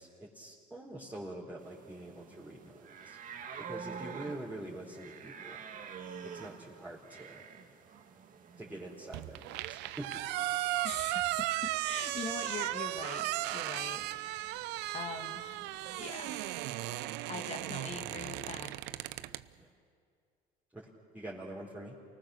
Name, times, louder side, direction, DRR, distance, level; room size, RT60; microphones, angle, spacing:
voice 1, 0.0-3.2 3.6-5.6 6.3-7.4 8.6-10.1 19.6-19.7 20.7-21.9, right 1 dB, 10° right, -6 dB, 4.3 m, -45 dB
sound 1, 1.6-17.0, right 6 dB, 50° right, 2.2 m, -50 dB
sound 2, 9.1-19.4, right 16 dB, 75° right, 0.7 m, -36 dB
voice 2, 10.8-11.2 11.8-15.6 15.9-16.5 17.3-18.7, left 4 dB, 40° left, 3 dB, 2.4 m, -43 dB
29.5 x 19.0 x 6.6 m, 2.3 s
supercardioid pair, 90°, 18 cm